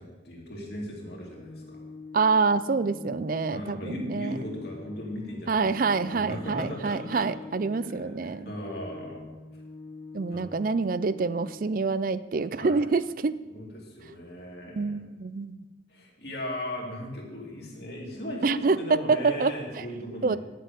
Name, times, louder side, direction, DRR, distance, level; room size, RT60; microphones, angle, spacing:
voice 1, 0.0-1.8 3.5-7.5 7.8-9.3 10.3-10.4 12.6-12.8 13.5-14.9 15.9-20.4, left 1 dB, 55° left, -2 dB, 2.8 m, -38 dB
Organ, 1.0-12.0, left 3 dB, 75° left, 1.4 m, -45 dB
voice 2, 2.1-4.4 5.5-8.5 10.1-13.3 14.7-15.6 18.4-19.9 20.2-20.4, right 4 dB, 45° right, 15 dB, 0.4 m, -26 dB
10.5 x 7.6 x 6.7 m, 1.2 s
head